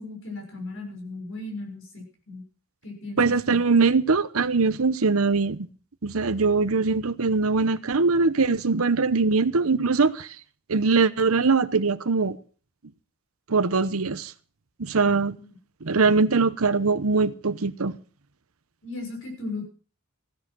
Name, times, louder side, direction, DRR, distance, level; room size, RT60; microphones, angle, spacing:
voice 1, 0.0-2.4 2.8-3.6 15.0-15.6 18.8-19.7, left 2 dB, 65° left, 6.4 m, -37 dB
voice 2, 3.2-5.7 6.0-10.3 10.7-12.4 13.5-14.3 14.8-15.4 15.8-17.9, right 4 dB, 90° right, 0.9 m, -22 dB
16.0 x 10.5 x 6.2 m
head